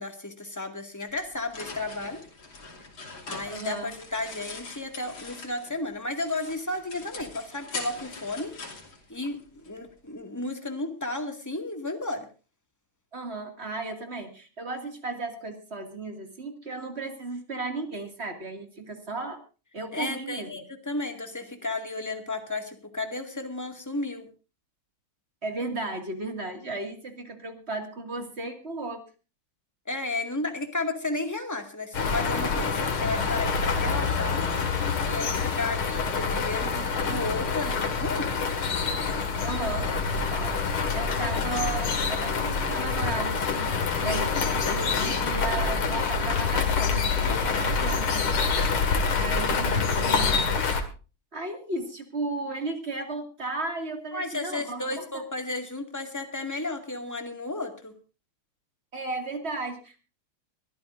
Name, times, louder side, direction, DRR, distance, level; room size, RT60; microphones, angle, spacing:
voice 1, 0.0-2.2 3.3-8.5 9.1-12.3 19.9-24.3 29.9-34.4 35.0-38.3 54.1-57.9, left 2 dB, 10° left, 4 dB, 1.9 m, -33 dB
sound 1, 1.1-5.8 6.2-9.7, left 4 dB, 65° left, 3.5 m, -42 dB
voice 2, 3.4-3.9 13.1-19.4 19.7-20.6 25.4-29.0 39.4-48.3 49.2-50.5 51.3-55.2 58.9-60.0, right 3 dB, 30° right, 5 dB, 2.4 m, -35 dB
sound 2, 31.9-50.8, left 5 dB, 90° left, 2.8 m, -26 dB
23.5 x 14.0 x 2.6 m, 0.33 s
omnidirectional pair, 2.3 m